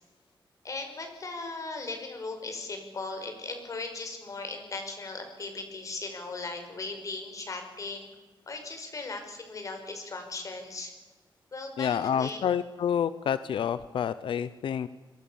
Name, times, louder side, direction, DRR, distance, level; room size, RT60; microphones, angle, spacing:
voice 1, 0.6-8.1 8.5-10.9 11.5-12.4, left 3 dB, 40° left, 5 dB, 5.6 m, -38 dB
voice 2, 11.8-14.9, left 8 dB, 90° left, 15 dB, 0.8 m, -28 dB
26.0 x 23.0 x 7.1 m, 1.2 s
wide cardioid pair, 155°, 8 cm